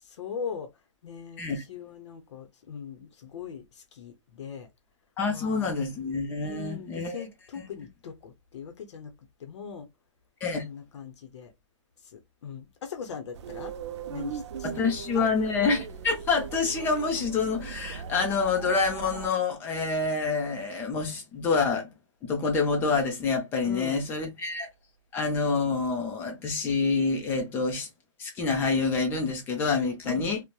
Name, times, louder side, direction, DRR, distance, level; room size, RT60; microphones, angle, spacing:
voice 1, 0.1-0.7 1.0-4.7 5.3-5.7 6.4-9.1 9.4-9.9 10.5-11.5 12.0-13.7 14.1-15.3 23.6-24.1 30.0-30.3, left 6 dB, 65° left, 0.7 m, -40 dB
voice 2, 5.2-7.2 10.4-10.6 14.6-21.9 22.2-24.7 25.1-27.9 28.2-30.4, left 4 dB, 15° left, 0.5 m, -27 dB
sound 1, 13.3-19.3, right 7 dB, 65° right, 0.4 m, -39 dB
2.7 x 2.1 x 2.2 m
hypercardioid pair, 160°, 16 cm